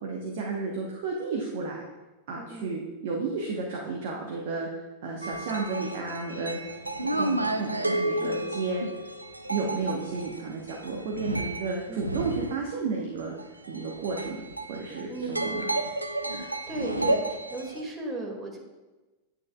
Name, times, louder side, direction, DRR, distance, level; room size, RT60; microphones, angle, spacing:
voice 1, 0.0-1.8 2.3-4.7 5.0-6.6 7.0-8.8 9.5-13.3 13.7-14.4 14.7-15.6, right 4 dB, 50° right, -1 dB, 1.2 m, -32 dB
voice 2, 2.4-2.8 8.2-8.5 11.9-12.2 15.1-15.8 16.2-18.6, right 2 dB, 20° right, -1 dB, 2.2 m, -37 dB
sound 1, 5.2-12.6 13.4-17.8, right 1 dB, 85° right, 0.5 m, -31 dB
9.2 x 8.9 x 2.3 m, 1.1 s
figure-of-eight pair, 90°, 0 cm